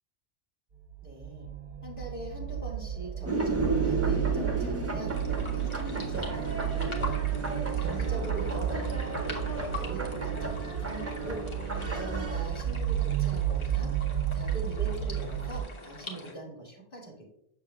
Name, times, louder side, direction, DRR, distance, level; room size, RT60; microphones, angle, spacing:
sound 1, 0.8-15.6, right 10 dB, 55° right, 0.7 m, -32 dB
voice 1, 1.0-1.5 1.8-5.2 5.5-7.2 7.5-11.5 11.8-13.9 14.3-17.3, right 2 dB, 55° left, -4 dB, 2.4 m, -42 dB
sound 2, 3.3-12.5, right 3 dB, 15° right, 0.6 m, -33 dB
sound 3, 5.1-16.3, left 3 dB, 30° left, 0.8 m, -44 dB
6.8 x 6.7 x 2.3 m, 0.74 s
omnidirectional pair, 1.1 m